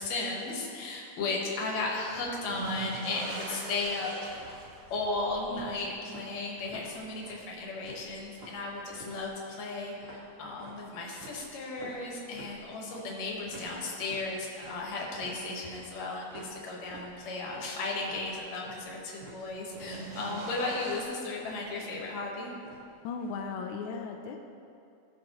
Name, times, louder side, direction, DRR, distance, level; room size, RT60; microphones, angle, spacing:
voice 1, 0.0-4.1 4.4-4.6 4.9-22.5, left 3 dB, 60° left, -2 dB, 2.3 m, -35 dB
sound 1, 2.2-9.2 9.6-10.3 11.9-12.0 13.6-13.7 19.4-21.0, right 2 dB, 70° right, 1.4 m, -43 dB
sound 2, 4.2-23.5, right 2 dB, 35° right, 1.0 m, -51 dB
voice 2, 23.0-24.4, left 5 dB, 85° left, 3 dB, 1.7 m, -36 dB
15.5 x 6.3 x 3.0 m, 2.6 s
omnidirectional pair, 4.0 m